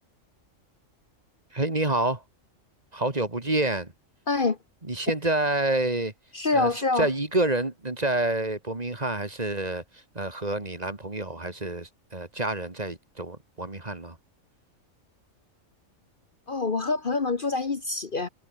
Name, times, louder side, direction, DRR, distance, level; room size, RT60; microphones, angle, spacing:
voice 1, 1.5-2.2 2.9-3.9 4.9-6.1 6.5-14.2, right 2 dB, 30° right, 2.4 m, -28 dB
voice 2, 4.3-4.6 6.3-7.1 16.5-18.3, left 3 dB, 40° left, 1.4 m, -26 dB
omnidirectional pair, 1.3 m